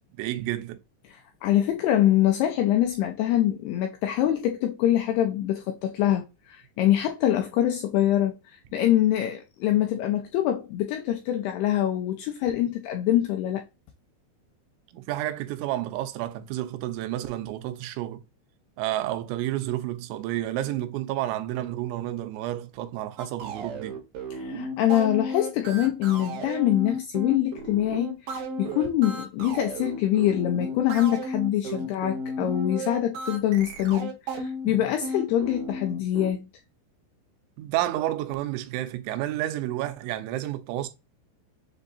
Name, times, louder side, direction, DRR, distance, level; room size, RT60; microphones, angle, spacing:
voice 1, 0.2-0.8 14.9-18.2 18.8-24.0 37.6-40.9, right 14 dB, 90° right, 3.1 m, -30 dB
voice 2, 1.1-13.6 24.4-36.5, left 12 dB, 90° left, 2.3 m, -24 dB
sound 1, 23.2-36.3, right 1 dB, 70° right, 2.4 m, -34 dB
7.0 x 2.7 x 2.5 m
omnidirectional pair, 5.2 m